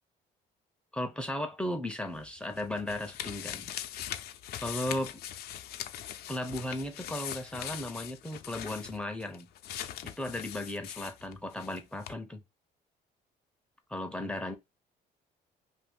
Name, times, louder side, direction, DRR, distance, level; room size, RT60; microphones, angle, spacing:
voice 1, 0.9-3.7 4.6-5.1 6.3-9.5 10.0-12.4 13.9-14.5, left 1 dB, 5° left, 0.6 m, -36 dB
sound 1, 2.1-11.8 12.0-12.1, left 11 dB, 70° left, 0.5 m, -41 dB
2.6 x 2.6 x 3.6 m
cardioid pair, 110°, 17 cm